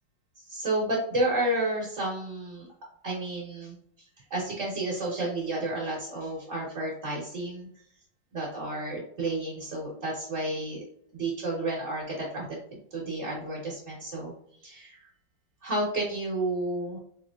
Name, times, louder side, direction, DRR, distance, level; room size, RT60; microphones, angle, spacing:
voice 1, 0.5-2.7 3.0-3.7 4.3-7.7 8.3-10.8 11.1-12.6 12.9-14.3 14.6-15.0 15.6-17.0, right 1 dB, 40° right, -5 dB, 1.3 m, -31 dB
4.4 x 3.0 x 2.4 m, 0.65 s
omnidirectional pair, 2.1 m